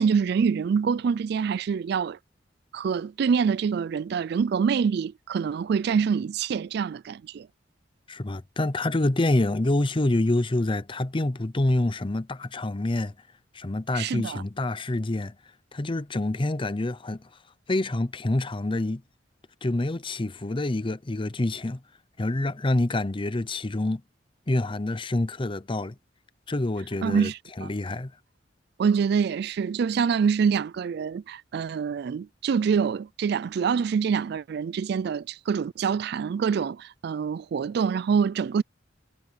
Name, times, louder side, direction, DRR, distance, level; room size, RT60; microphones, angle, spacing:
voice 1, 0.0-2.2 2.7-7.5 13.9-14.4 27.0-27.7 28.8-38.6, right 6 dB, 60° right, 0.3 m, -25 dB
voice 2, 8.1-13.1 13.5-15.4 15.7-17.2 17.7-19.0 19.6-21.8 22.2-24.0 24.5-25.9 26.5-27.3 27.6-28.1, left 2 dB, 30° left, 0.7 m, -27 dB
head